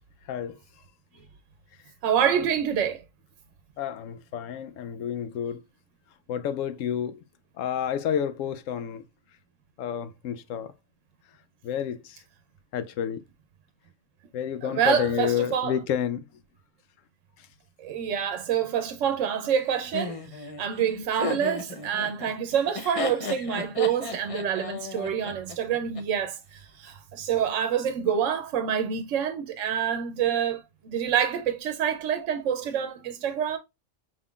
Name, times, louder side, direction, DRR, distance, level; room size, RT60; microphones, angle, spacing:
voice 1, 0.3-0.6 3.8-5.6 6.3-7.2 7.6-9.0 9.8-10.7 11.6-12.2 12.7-13.2 14.3-16.2 17.4-17.5, left 9 dB, 90° left, 1.0 m, -30 dB
voice 2, 2.0-3.0 14.6-15.7 17.8-30.6 30.9-33.6, right 8 dB, 75° right, 0.9 m, -27 dB
Laughter, 19.9-26.0, left 3 dB, 35° left, 0.6 m, -34 dB
5.2 x 3.6 x 2.3 m
omnidirectional pair, 1.3 m